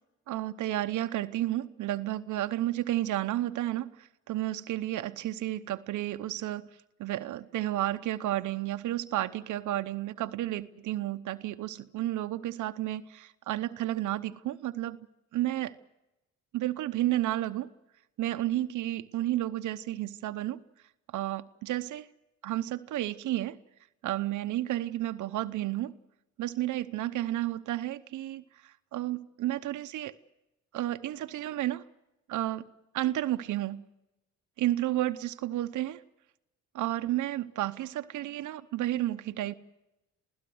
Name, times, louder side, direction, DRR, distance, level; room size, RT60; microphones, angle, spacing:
voice 1, 0.3-6.7 7.0-15.1 15.3-15.8 16.5-17.7 18.2-20.6 21.1-22.1 22.4-23.6 24.0-26.0 26.4-30.1 30.7-31.8 32.3-32.6 32.9-33.8 34.6-36.0 36.7-39.5, right 14 dB, 80° right, 0.9 m, -32 dB
27.5 x 16.5 x 7.8 m
cardioid pair, 90°, 30 cm